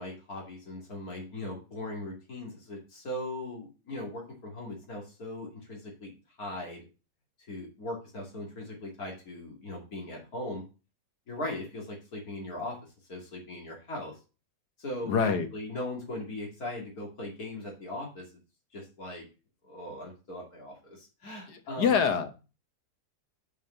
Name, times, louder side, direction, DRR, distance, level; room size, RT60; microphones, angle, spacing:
voice 1, 0.0-6.1 6.4-6.9 7.5-10.6 11.3-12.8 13.1-14.1 14.8-18.2 18.7-19.3 19.6-22.0, left 1 dB, 65° left, 0 dB, 3.0 m, -39 dB
voice 2, 15.1-15.5 21.5-22.3, left 6 dB, 90° left, 8 dB, 1.7 m, -26 dB
6.6 x 5.3 x 5.6 m, 0.32 s
omnidirectional pair, 1.7 m